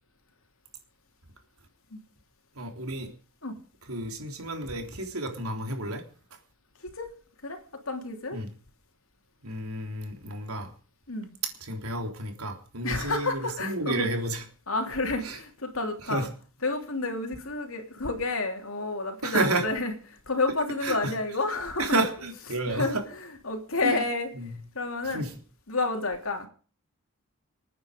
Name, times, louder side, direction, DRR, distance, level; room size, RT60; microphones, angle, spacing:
voice 1, 2.6-3.1 3.9-6.0 8.3-8.5 9.4-10.7 11.6-14.4 15.2-15.4 16.0-16.3 19.2-19.7 20.8-21.1 21.8-23.0 23.8-24.0 24.4-24.6 25.1-25.4, right 2 dB, 90° right, 3.5 m, -31 dB
voice 2, 7.9-8.4 11.1-11.3 12.8-14.1 14.7-16.3 16.6-19.9 20.3-22.0 22.7-24.3 24.7-25.3 25.7-26.5, left 3 dB, 70° left, 3.0 m, -30 dB
26.5 x 9.4 x 5.2 m
head